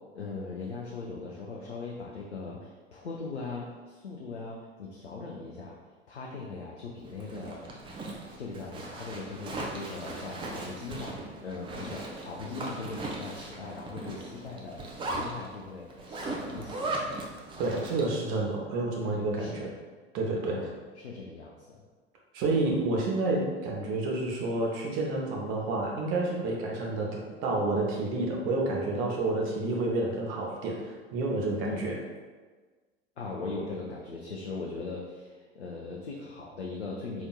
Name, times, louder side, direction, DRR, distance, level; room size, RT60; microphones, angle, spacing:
voice 1, 0.1-5.8 6.1-7.7 8.4-17.0 19.0-19.7 20.5-21.9 31.6-31.9 33.2-37.3, left 3 dB, 85° left, -2 dB, 0.5 m, -40 dB
Zipper (clothing), 7.1-18.3, right 2 dB, 15° right, 0.4 m, -38 dB
voice 2, 17.6-19.7 20.1-20.6 22.3-31.9, right 2 dB, 45° right, -1 dB, 0.8 m, -29 dB
4.1 x 2.8 x 2.3 m, 1.4 s
figure-of-eight pair, 80°, 32 cm